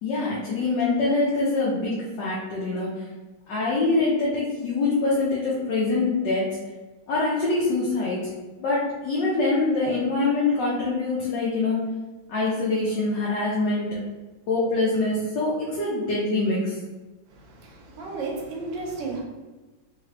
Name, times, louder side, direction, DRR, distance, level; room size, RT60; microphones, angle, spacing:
voice 1, 0.0-2.9 3.5-6.4 7.1-8.2 8.6-11.8 12.3-14.0 14.5-16.8, left 3 dB, 65° left, -6 dB, 1.3 m, -24 dB
voice 2, 17.3-19.2, right 3 dB, 70° right, -1 dB, 1.4 m, -33 dB
3.8 x 3.1 x 3.0 m, 1.2 s
omnidirectional pair, 2.2 m